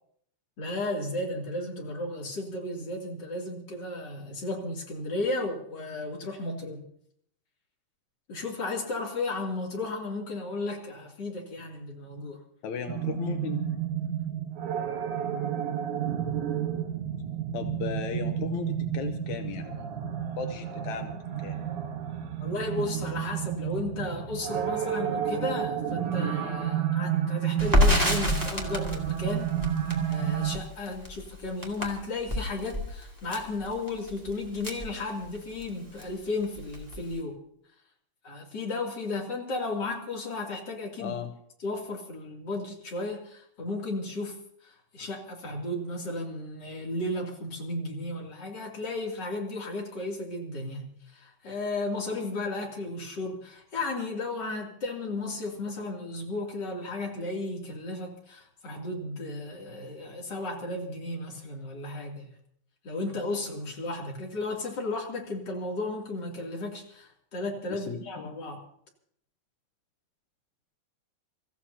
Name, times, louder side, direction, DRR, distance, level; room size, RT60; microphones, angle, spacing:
voice 1, 0.6-6.8 8.3-12.4 22.4-29.5 30.1-37.3 38.2-41.1 41.6-44.4 44.6-62.3 62.8-68.6, left 2 dB, 30° left, -1 dB, 3.0 m, -34 dB
voice 2, 12.6-13.8 17.5-20.1 20.4-21.2 21.4-21.6 41.0-41.3 67.7-68.3, left 7 dB, 80° left, 6 dB, 1.6 m, -36 dB
sound 1, 12.9-30.6, right 9 dB, 60° right, 2.4 m, -31 dB
Crackle, 27.6-35.7 36.0-36.1 36.4-37.2, left 1 dB, 10° right, 1.0 m, -28 dB
29.0 x 14.5 x 2.8 m, 0.66 s
omnidirectional pair, 4.6 m